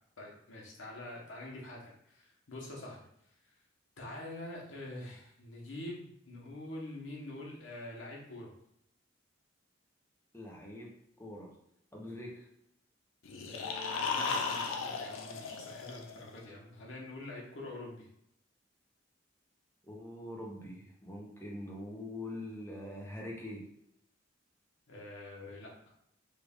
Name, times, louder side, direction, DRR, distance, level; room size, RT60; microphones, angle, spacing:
voice 1, 0.2-3.0 4.0-8.5 13.4-18.1 24.9-25.7, left 1 dB, 70° left, -2 dB, 1.0 m, -45 dB
voice 2, 10.3-10.9 11.2-11.5 11.9-12.5 19.8-23.6, left 1 dB, 10° left, -2 dB, 0.7 m, -43 dB
sound 1, 13.3-16.4, left 4 dB, 90° left, 0.5 m, -36 dB
3.3 x 2.4 x 3.5 m, 0.75 s
head